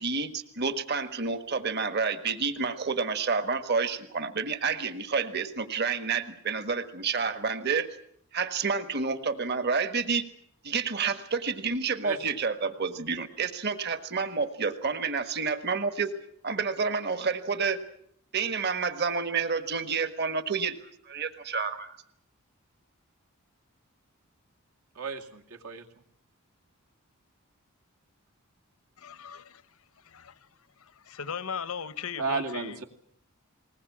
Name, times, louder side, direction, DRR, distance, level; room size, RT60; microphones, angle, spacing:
voice 1, 0.0-7.9 8.3-10.3 10.6-16.1 16.4-17.8 18.3-20.8 21.1-22.0, right 5 dB, 45° right, 1.6 m, -29 dB
voice 2, 12.0-12.4 24.9-25.9 32.2-32.8, right 4 dB, 80° right, 2.4 m, -34 dB
voice 3, 29.0-29.6 30.1-30.3 31.1-32.8, left 6 dB, 70° left, 0.9 m, -37 dB
20.5 x 20.0 x 8.6 m
head